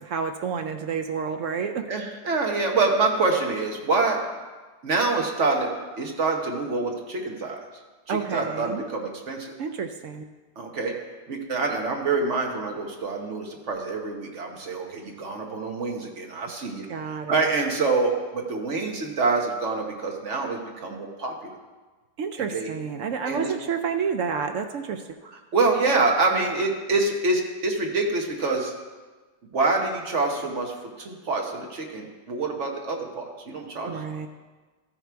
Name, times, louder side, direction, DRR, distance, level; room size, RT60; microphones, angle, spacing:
voice 1, 0.0-1.9 8.1-8.8 9.6-10.2 16.9-17.5 22.2-25.0 33.9-34.3, right 6 dB, 75° right, 7 dB, 0.7 m, -29 dB
voice 2, 1.9-4.2 4.8-7.6 8.1-9.5 10.6-10.9 11.3-21.5 22.5-22.7 23.3-23.5 25.5-28.7 29.5-34.0, right 3 dB, 50° right, 2 dB, 1.2 m, -26 dB
14.0 x 5.9 x 4.5 m, 1.3 s
omnidirectional pair, 1.8 m